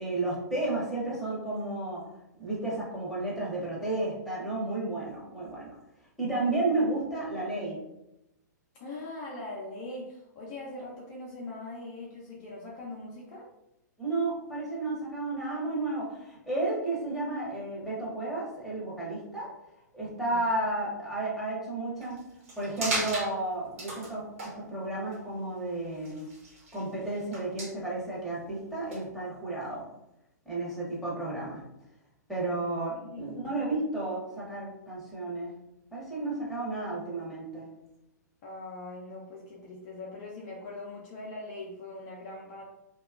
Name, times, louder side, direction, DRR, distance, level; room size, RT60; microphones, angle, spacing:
voice 1, 0.0-2.0 2.4-5.7 6.2-7.8 14.0-19.5 19.9-22.2 22.6-26.3 26.7-29.8 30.4-31.6 32.3-35.5 35.9-37.7, right 2 dB, ahead, -8 dB, 1.0 m, -32 dB
voice 2, 8.8-13.5 20.3-20.4 32.4-32.5 32.9-33.5 38.4-42.6, left 2 dB, 35° left, -4 dB, 0.5 m, -41 dB
sound 1, 22.0-22.2 22.4-23.3 23.8-24.1 24.4-24.5 25.1-25.2 25.9-26.8 27.1-27.7 28.9-29.0, right 2 dB, 50° right, 1.1 m, -35 dB
2.8 x 2.3 x 2.4 m, 0.87 s
figure-of-eight pair, 115°, 10 cm